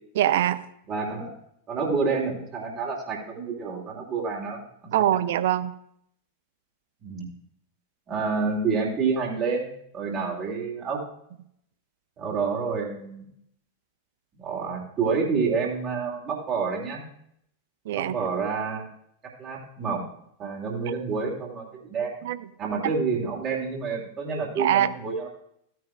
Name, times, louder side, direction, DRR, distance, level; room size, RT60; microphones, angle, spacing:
voice 1, 0.2-0.7 4.9-5.7 17.9-18.2 22.2-22.4 22.8-22.9 24.6-25.0, right 11 dB, 55° right, 14 dB, 0.5 m, -23 dB
voice 2, 0.9-1.3 1.7-4.9 7.0-7.3 8.1-11.0 12.2-13.3 14.4-17.0 17.9-18.9 19.4-20.0 20.4-22.2 22.6-25.3, right 5 dB, 35° right, -3 dB, 2.7 m, -28 dB
15.5 x 9.2 x 2.4 m, 0.71 s
figure-of-eight pair, 90°, 0 cm